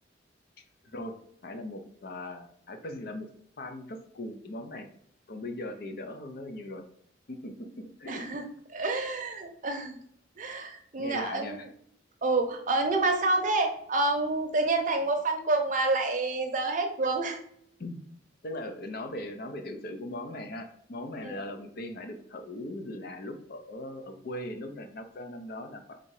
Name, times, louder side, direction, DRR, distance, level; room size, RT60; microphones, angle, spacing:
voice 1, 0.8-1.2 1.4-3.3 3.6-4.9 5.3-6.8 7.3-8.2 11.0-11.7 17.8-18.0 18.4-26.0, left 1 dB, 55° left, 7 dB, 0.6 m, -39 dB
voice 2, 8.1-8.4 8.7-10.0 10.4-11.6 12.2-17.4 21.2-21.3, right 2 dB, 45° right, 4 dB, 0.7 m, -28 dB
3.8 x 2.7 x 4.7 m, 0.66 s
head